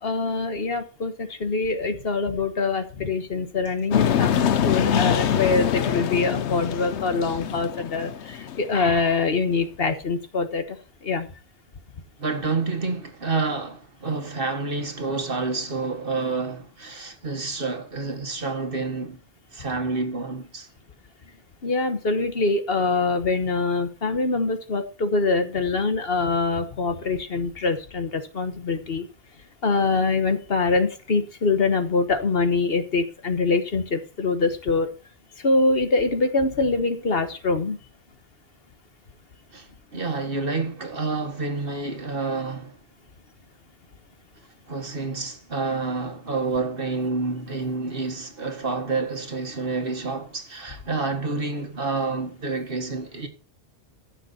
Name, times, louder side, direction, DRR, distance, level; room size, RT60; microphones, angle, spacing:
voice 1, 0.0-11.3 21.6-29.1 29.6-34.9 35.4-37.8, left 3 dB, 55° left, 1.4 m, -24 dB
sound 1, 3.9-9.0, left 9 dB, 75° left, 1.0 m, -24 dB
voice 2, 12.2-19.2 19.5-20.7 39.5-42.8 44.7-53.3, right 3 dB, 50° right, 1.9 m, -28 dB
15.0 x 6.6 x 4.2 m
omnidirectional pair, 1.2 m